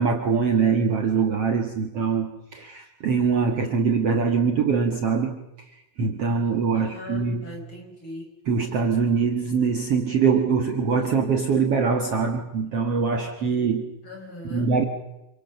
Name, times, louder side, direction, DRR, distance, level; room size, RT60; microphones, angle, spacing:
voice 1, 0.0-5.4 6.0-7.6 8.5-13.9 14.5-14.8, right 5 dB, 50° right, 4 dB, 2.1 m, -23 dB
voice 2, 6.8-8.3 14.0-14.7, left 2 dB, 35° left, 3 dB, 5.2 m, -39 dB
27.5 x 25.0 x 6.8 m, 0.94 s
omnidirectional pair, 4.2 m